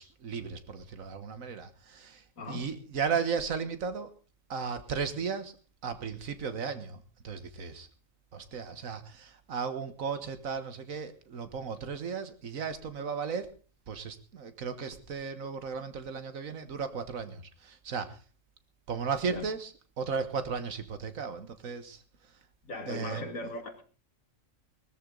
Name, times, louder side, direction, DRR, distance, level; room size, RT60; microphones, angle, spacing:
voice 1, 0.0-4.1 4.5-5.6 5.8-7.9 8.3-13.5 13.9-18.2 18.9-19.7 20.0-22.0 22.9-23.2, right 6 dB, 85° right, 11 dB, 1.8 m, -35 dB
voice 2, 2.4-2.7 19.3-19.5 22.6-23.8, left 2 dB, 85° left, 7 dB, 2.4 m, -39 dB
19.5 x 13.5 x 3.9 m, 0.35 s
omnidirectional pair, 1.4 m